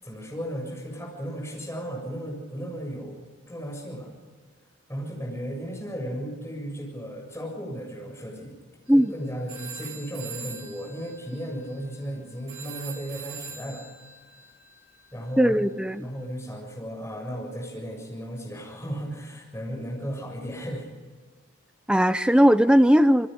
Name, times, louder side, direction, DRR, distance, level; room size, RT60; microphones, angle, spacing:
voice 1, 0.0-4.1 4.9-8.5 8.9-13.8 15.1-15.6 16.0-20.9, equal, 15° left, -1 dB, 7.4 m, -35 dB
sound 1, 8.9-9.1 9.5-16.2, right 5 dB, 70° right, 3.4 m, -43 dB
voice 2, 15.4-16.1 21.9-23.3, equal, 5° right, 11 dB, 0.6 m, -18 dB
28.0 x 22.0 x 5.3 m, 1.4 s
head